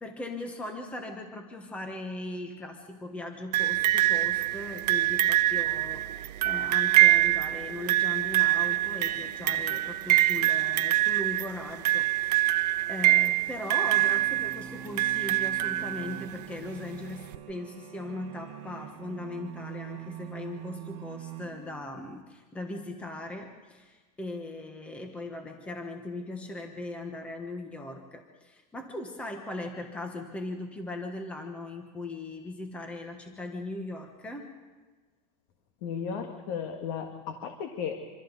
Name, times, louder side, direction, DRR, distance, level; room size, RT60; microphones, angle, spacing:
voice 1, 0.0-12.6 12.9-34.5, left 2 dB, 5° left, 4 dB, 1.3 m, -39 dB
sound 1, 3.5-16.4 17.3-17.4, right 16 dB, 80° right, 0.8 m, -25 dB
sound 2, 13.8-22.1, right 10 dB, 50° right, 1.8 m, -44 dB
voice 2, 35.8-38.1, left 7 dB, 40° left, 4 dB, 1.7 m, -35 dB
26.5 x 25.5 x 4.1 m, 1.3 s
supercardioid pair, 180°, 20 cm